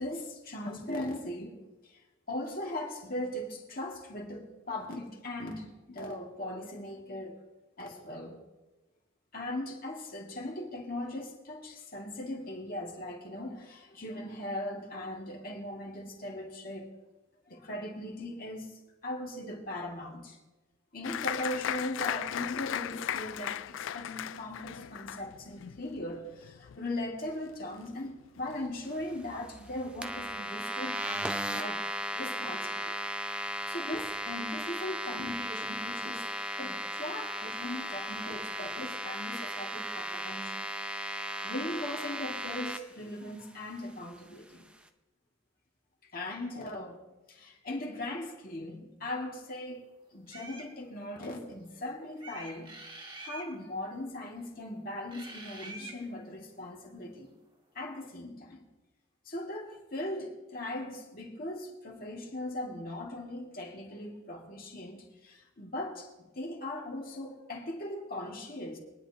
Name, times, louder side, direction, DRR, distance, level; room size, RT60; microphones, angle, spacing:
voice 1, 0.0-2.0 2.3-7.4 7.8-8.4 9.3-16.9 17.5-18.7 19.0-20.4 20.9-31.8 32.1-33.0 33.4-44.7 46.1-47.0 47.3-52.7 53.2-57.3 57.7-58.7 59.3-68.8, left 1 dB, 45° left, 2.2 m, -39 dB
Applause, 21.0-28.1 28.4-29.1 29.5-29.6 29.9-30.4, left 10 dB, 75° left, 0.3 m, -37 dB
sound 1, 30.0-42.8, right 1 dB, 5° right, 0.6 m, -36 dB
sound 2, 50.3-50.7 52.2-53.5 55.1-56.0, right 2 dB, 25° right, 1.7 m, -45 dB
23.0 x 10.5 x 2.9 m
head